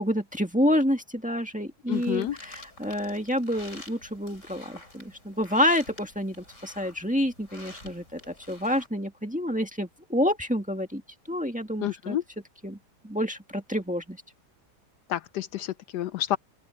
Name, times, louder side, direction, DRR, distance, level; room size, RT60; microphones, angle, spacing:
voice 1, 0.0-11.0 11.3-12.2 12.6-12.8 13.0-14.2, equal, 5° right, 1.7 m, -28 dB
voice 2, 1.9-2.4 11.8-12.2 15.1-16.4, left 12 dB, 75° left, 1.1 m, -29 dB
sound 1, 1.9-8.9, left 1 dB, 45° left, 7.2 m, -48 dB
open air
omnidirectional pair, 1.9 m